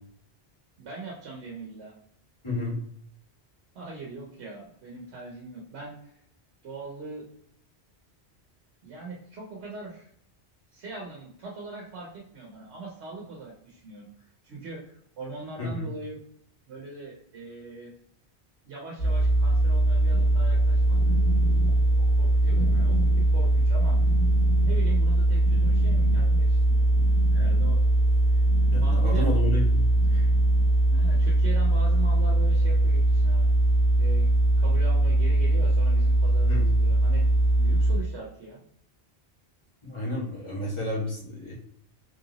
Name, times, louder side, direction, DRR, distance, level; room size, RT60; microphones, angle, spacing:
voice 1, 0.8-1.9 3.7-6.2 6.6-7.3 8.8-10.1 10.7-16.2 16.7-17.9 18.6-21.0 22.0-24.0 24.6-27.8 28.3-28.4 28.8-29.3 30.9-33.5 33.9-34.3 34.6-37.3 37.6-38.6, right 3 dB, 85° right, -2 dB, 1.1 m, -41 dB
voice 2, 2.4-2.8 15.6-15.9 28.7-30.3 36.4-36.7 39.8-41.5, left 1 dB, 25° left, -7 dB, 1.5 m, -31 dB
sound 1, 19.0-38.0, right 1 dB, 55° left, 1.4 m, -21 dB
sound 2, 20.1-30.8, left 1 dB, 90° left, 1.3 m, -38 dB
3.3 x 2.9 x 3.9 m, 0.65 s
omnidirectional pair, 1.1 m